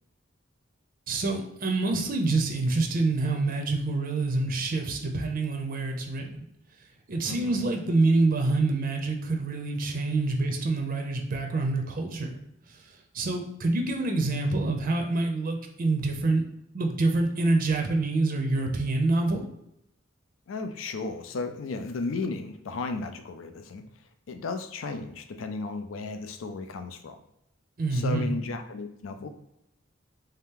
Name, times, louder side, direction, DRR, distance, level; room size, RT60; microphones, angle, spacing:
voice 1, 1.1-6.4 7.1-12.4 13.1-16.4 16.7-19.4 27.8-28.3, right 2 dB, 45° right, 3 dB, 0.5 m, -26 dB
voice 2, 7.3-7.6 20.5-23.8 24.3-27.2 27.9-29.3, left 3 dB, 85° left, 7 dB, 0.4 m, -34 dB
3.4 x 2.8 x 3.6 m, 0.80 s
head